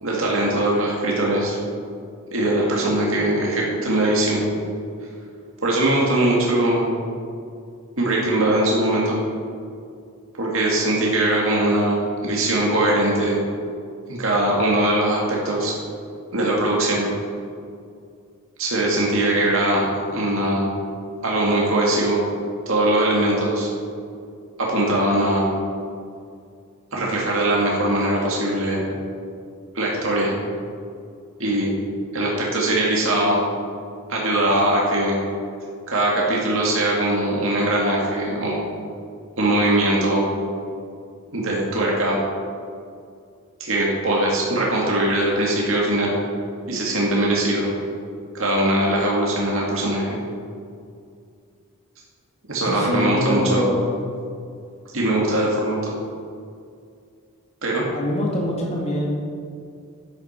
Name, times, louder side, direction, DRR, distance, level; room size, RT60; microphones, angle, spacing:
voice 1, 0.0-1.6 2.3-4.5 5.6-6.9 8.0-9.2 10.4-13.4 14.1-15.7 16.3-17.1 18.6-20.7 21.2-22.2 22.7-23.7 24.6-25.5 26.9-28.9 29.7-30.3 31.4-31.7 32.1-33.4 34.1-35.2 35.9-38.6 39.4-40.3 41.3-42.2 43.6-46.2 46.7-47.7 48.3-50.2 52.5-53.7 54.9-55.9 57.6-57.8, right 1 dB, 65° right, -3 dB, 2.0 m, -21 dB
voice 2, 52.6-54.0 57.9-59.1, equal, 30° left, -2 dB, 2.1 m, -24 dB
11.0 x 9.7 x 4.4 m, 2.3 s
head